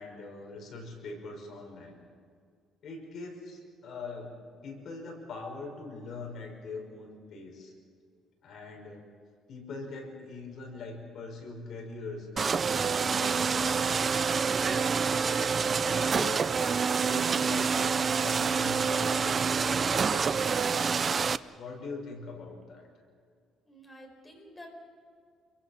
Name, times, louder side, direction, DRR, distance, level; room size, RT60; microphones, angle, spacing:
voice 1, 0.0-2.0 2.8-4.3 4.6-7.7 8.4-9.0 9.5-14.9 15.8-16.5 17.0-21.3 21.5-22.9, left 3 dB, 50° left, 1 dB, 5.9 m, -42 dB
sound 1, 12.4-21.4, right 5 dB, 30° right, 0.5 m, -27 dB
voice 2, 23.7-24.7, equal, 10° left, 1 dB, 4.7 m, -50 dB
28.5 x 23.0 x 5.9 m, 2.1 s
cardioid pair, 155°, 0 cm